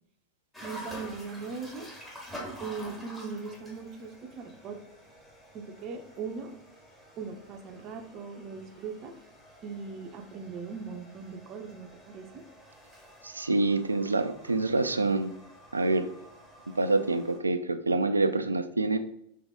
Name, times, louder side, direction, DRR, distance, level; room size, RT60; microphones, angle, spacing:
sound 1, 0.5-17.4, equal, 5° left, 1.1 m, -48 dB
voice 1, 0.6-1.9 2.6-4.8 5.5-6.6 7.2-9.1 9.6-12.4, right 5 dB, 35° right, 6 dB, 0.6 m, -39 dB
voice 2, 13.2-15.3 15.7-16.1 16.7-19.0, right 3 dB, 80° right, 10 dB, 0.3 m, -26 dB
3.6 x 3.3 x 3.6 m, 0.73 s
figure-of-eight pair, 90°, 0 cm